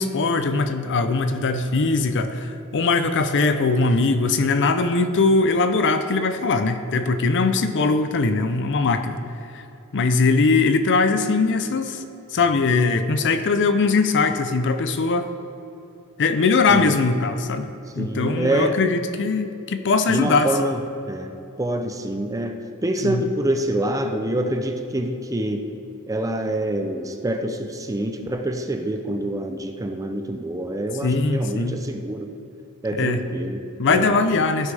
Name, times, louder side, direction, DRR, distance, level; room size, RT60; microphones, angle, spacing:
voice 1, 0.0-9.2 9.5-9.6 9.9-12.0 12.3-15.3 16.2-17.7 17.9-20.5 23.0-23.3 31.0-31.8 33.0-33.2 33.8-34.7, left 3 dB, 55° left, 9 dB, 0.6 m, -21 dB
voice 2, 18.0-18.8 20.1-20.8 21.1-21.3 21.6-25.6 26.1-32.3 32.8-34.1, right 1 dB, 15° right, 6 dB, 0.5 m, -26 dB
16.0 x 8.2 x 3.4 m, 2.9 s
head